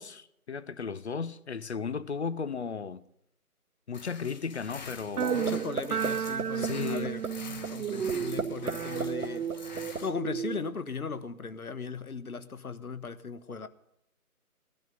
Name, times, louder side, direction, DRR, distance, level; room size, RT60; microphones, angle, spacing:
voice 1, 0.0-3.0 3.9-5.6 6.6-7.2, left 5 dB, 45° left, 0.8 m, -35 dB
sound 1, 3.9-10.1, left 4 dB, 30° left, 1.5 m, -45 dB
sound 2, 5.2-5.5 5.8-6.1 6.4-6.7 7.0-7.3 7.6-7.7 8.1-8.7 9.0-10.0, right 4 dB, 70° right, 1.4 m, -31 dB
sound 3, 5.2-10.7, right 8 dB, 85° right, 0.6 m, -33 dB
voice 2, 5.3-7.2 7.7-13.7, left 5 dB, 70° left, 1.4 m, -38 dB
19.0 x 12.0 x 5.4 m
figure-of-eight pair, 155°, 45 cm